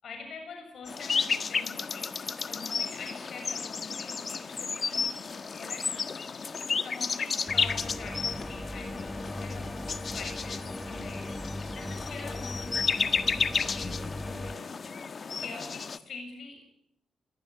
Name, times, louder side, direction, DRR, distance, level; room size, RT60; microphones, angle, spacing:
voice 1, 0.0-2.1 2.5-6.1 6.8-9.8 10.1-16.7, left 4 dB, 60° left, 4 dB, 7.0 m, -45 dB
sound 1, 0.9-16.0, left 5 dB, 40° left, 1.5 m, -32 dB
sound 2, 7.5-14.5, left 1 dB, 5° left, 1.4 m, -39 dB
25.5 x 23.0 x 9.8 m, 0.75 s
cardioid pair, 120°, 0 cm